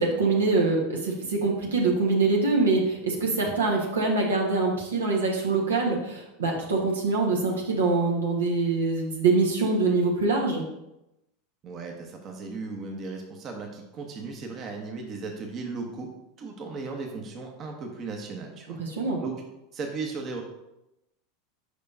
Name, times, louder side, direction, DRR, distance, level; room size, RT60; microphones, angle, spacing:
voice 1, 0.0-10.6 18.8-19.2, right 3 dB, 75° right, -1 dB, 1.3 m, -24 dB
voice 2, 11.6-16.1 16.4-18.8 19.2-19.4 19.7-20.4, right 4 dB, 35° right, 2 dB, 1.0 m, -36 dB
6.6 x 5.6 x 2.7 m, 0.90 s
figure-of-eight pair, 85°, 0 cm